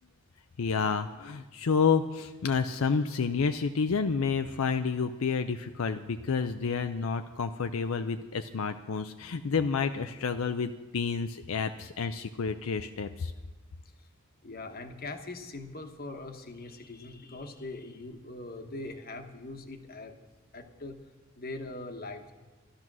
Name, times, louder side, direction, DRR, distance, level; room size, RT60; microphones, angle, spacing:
voice 1, 0.6-13.3, left 5 dB, 75° left, 8 dB, 0.5 m, -29 dB
voice 2, 14.4-20.1 20.5-21.0 21.4-22.3, left 2 dB, 45° left, 6 dB, 1.2 m, -41 dB
13.0 x 12.5 x 6.1 m, 1.2 s
head